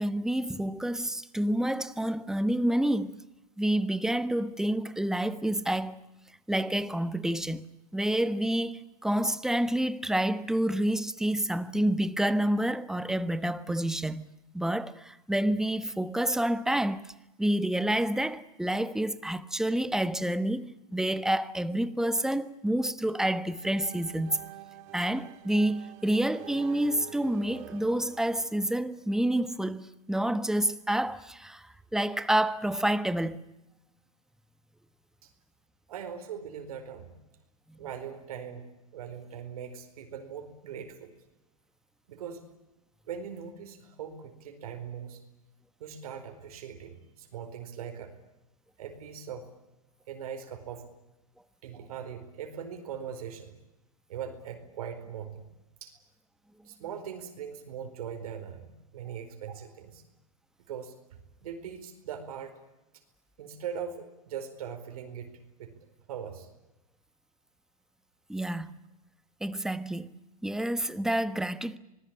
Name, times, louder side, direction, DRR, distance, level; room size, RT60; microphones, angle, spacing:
voice 1, 0.0-3.2 3.6-6.0 6.5-7.6 7.9-14.3 14.5-17.1 17.4-24.5 24.9-33.5 37.7-37.8 68.3-68.7 69.4-71.8, right 1 dB, 5° right, 1.2 m, -28 dB
sound 1, 23.6-29.4, right 15 dB, 55° right, 2.0 m, -48 dB
voice 2, 35.9-37.1 37.8-38.6 38.9-41.1 42.1-42.4 43.1-45.2 45.8-48.1 48.8-49.5 50.1-50.8 51.6-53.5 54.1-55.5 55.8-55.9 56.6-60.0 60.7-62.6 63.4-65.3 65.6-65.7 66.1-66.5, right 8 dB, 75° right, 4.7 m, -40 dB
26.5 x 20.0 x 8.8 m
hypercardioid pair, 115°, 19 cm